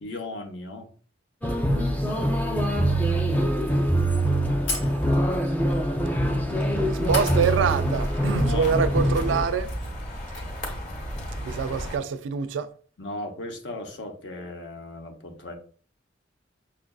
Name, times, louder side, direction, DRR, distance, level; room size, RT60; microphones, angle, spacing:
voice 1, 0.0-0.9 8.3-9.1 13.0-15.5, left 2 dB, 70° left, 0.7 m, -36 dB
sound 1, 1.4-9.5, right 1 dB, 10° left, 0.4 m, -24 dB
sound 2, 4.0-4.1 4.7-5.4 6.5-6.7 7.1-7.8 8.1-8.2 9.2-9.3 9.5-10.9, left 2 dB, 90° left, 1.0 m, -35 dB
voice 2, 6.8-9.7 11.4-12.7, right 6 dB, 85° right, 0.3 m, -25 dB
sound 3, 7.0-12.0, equal, 40° left, 0.9 m, -34 dB
5.7 x 2.4 x 2.3 m
head